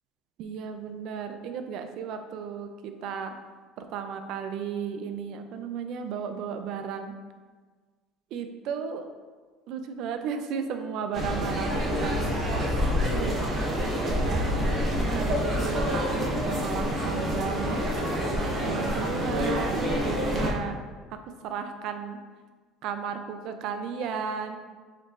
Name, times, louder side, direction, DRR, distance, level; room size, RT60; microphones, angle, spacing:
voice 1, 0.4-3.3 3.8-7.2 8.3-9.0 9.7-12.7 13.0-13.4 14.0-14.4 15.1-17.8 18.6-20.8 21.4-22.2 22.8-24.6, right 6 dB, 60° right, 7 dB, 0.4 m, -34 dB
sound 1, 11.1-20.5, equal, 35° right, 0.8 m, -27 dB
4.3 x 4.0 x 2.5 m, 1.4 s
cardioid pair, 125°, 0 cm